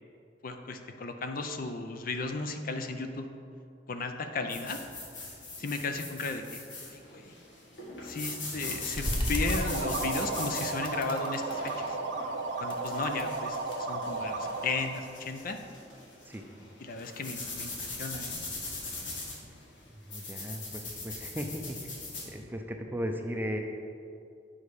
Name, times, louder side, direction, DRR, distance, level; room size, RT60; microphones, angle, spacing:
voice 1, 0.4-3.3 3.9-4.8 5.6-7.3 8.0-12.0 12.6-15.6 16.8-18.4, left 3 dB, 50° left, 6 dB, 0.5 m, -35 dB
sound 1, 4.5-22.3, left 3 dB, 85° left, 1.7 m, -41 dB
sound 2, 8.9-10.2 10.5-12.1 12.5-13.8 14.4-15.5, equal, 30° left, 0.9 m, -36 dB
sound 3, 9.3-15.0, right 3 dB, 75° right, 0.8 m, -34 dB
voice 2, 20.1-21.9 22.2-23.6, equal, 10° right, 3 dB, 0.5 m, -36 dB
8.7 x 5.4 x 4.8 m, 2.5 s
head